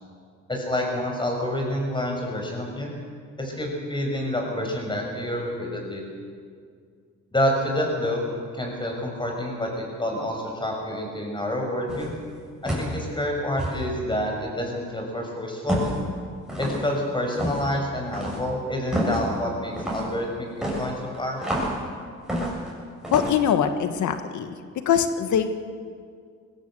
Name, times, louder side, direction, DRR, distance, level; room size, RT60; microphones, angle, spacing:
voice 1, 0.5-2.9 3.4-6.0 7.3-8.2 8.5-12.1 12.6-15.8 16.6-21.6, left 1 dB, 15° left, 1 dB, 6.4 m, -28 dB
sound 1, 11.9-12.2 12.7-13.0 13.6-13.8 15.7-16.0 16.5-16.8 17.3-17.7 18.1-18.4 18.9-19.2 19.8-20.1 20.6-21.8 22.3-22.7 23.0-23.3, equal, ahead, 7.5 m, -28 dB
voice 2, 23.1-24.5 24.8-25.6, left 8 dB, 70° left, 9 dB, 1.6 m, -22 dB
21.0 x 16.0 x 7.8 m, 2.1 s
cardioid pair, 90°, 30 cm